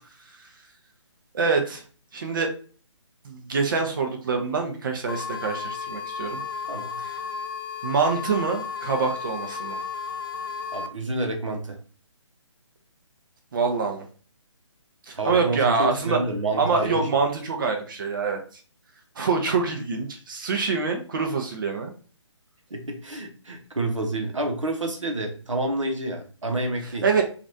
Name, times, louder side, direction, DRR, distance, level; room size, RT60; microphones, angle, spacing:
voice 1, 1.3-1.8 2.1-2.5 3.2-6.4 7.0-7.1 7.8-9.8 13.5-14.1 15.1-16.2 16.6-18.4 19.2-21.9 26.8-27.2, right 4 dB, 40° right, 3 dB, 0.7 m, -25 dB
sound 1, 5.1-10.9, left 5 dB, 45° left, 0.4 m, -33 dB
voice 2, 6.7-7.0 10.7-11.8 15.1-17.1 22.7-27.0, right 2 dB, 80° right, 3 dB, 0.8 m, -29 dB
3.0 x 2.5 x 2.6 m, 0.40 s
figure-of-eight pair, 145°, 16 cm